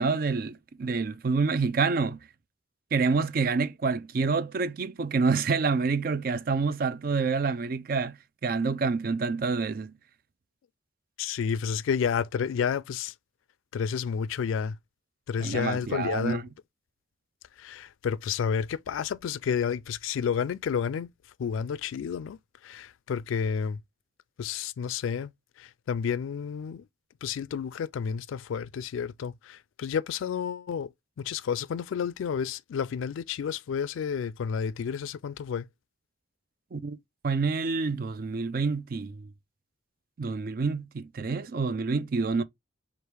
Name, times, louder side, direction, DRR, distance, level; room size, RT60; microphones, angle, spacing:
voice 1, 0.0-2.2 2.9-8.2 8.4-9.9 15.4-16.4 36.7-37.0 37.2-39.3 40.2-42.4, right 4 dB, 45° right, 0.4 m, -27 dB
voice 2, 11.2-13.1 13.7-14.8 15.3-16.4 17.6-21.1 21.4-23.8 24.4-25.3 25.6-26.8 27.2-30.9 31.2-35.7, left 7 dB, 85° left, 0.3 m, -30 dB
4.6 x 2.5 x 3.3 m
head